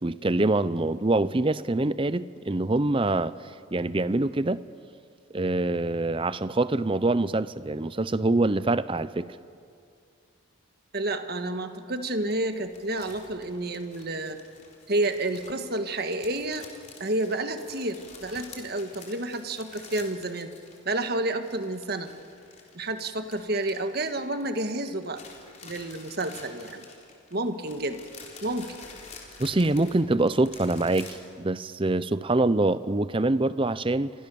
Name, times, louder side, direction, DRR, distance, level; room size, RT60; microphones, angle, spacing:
voice 1, 0.0-4.6 5.3-9.4 29.4-34.1, right 2 dB, 25° right, 0.6 m, -25 dB
voice 2, 10.9-14.4 14.9-16.7 17.0-20.5 20.8-22.1 22.7-25.2 25.6-26.8 27.3-28.0 28.4-28.7, right 2 dB, 50° right, 1.6 m, -30 dB
Crunchy paper, 12.3-21.0 21.3-24.6 24.9-31.2, left 4 dB, 35° left, 4.2 m, -49 dB
29.5 x 24.5 x 7.0 m
head